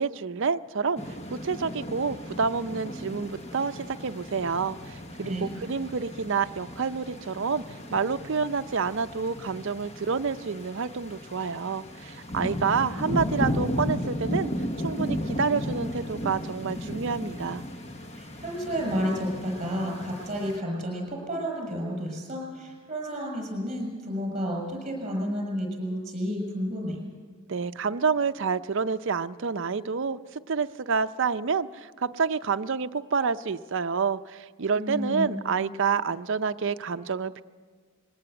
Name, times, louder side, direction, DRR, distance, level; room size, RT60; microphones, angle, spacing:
voice 1, 0.0-7.6 7.9-14.5 14.8-17.6 27.5-37.4, right 5 dB, 55° right, 10 dB, 0.5 m, -28 dB
sound 1, 1.0-20.6, equal, 30° left, 1.0 m, -35 dB
voice 2, 18.1-27.0 34.8-35.4, equal, 30° right, 0 dB, 6.3 m, -31 dB
21.0 x 17.5 x 7.9 m, 1.5 s
head